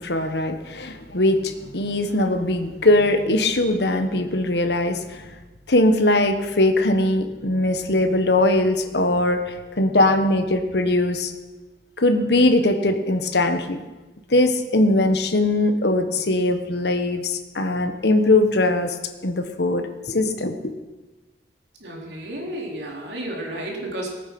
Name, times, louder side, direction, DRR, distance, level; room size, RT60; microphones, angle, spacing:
voice 1, 0.0-5.2 5.7-11.3 12.0-13.8 14.3-18.9 19.2-20.5, left 2 dB, 65° left, 7 dB, 1.3 m, -20 dB
voice 2, 21.8-24.1, right 1 dB, 70° right, -1 dB, 3.8 m, -32 dB
19.5 x 9.3 x 6.1 m, 1.2 s
head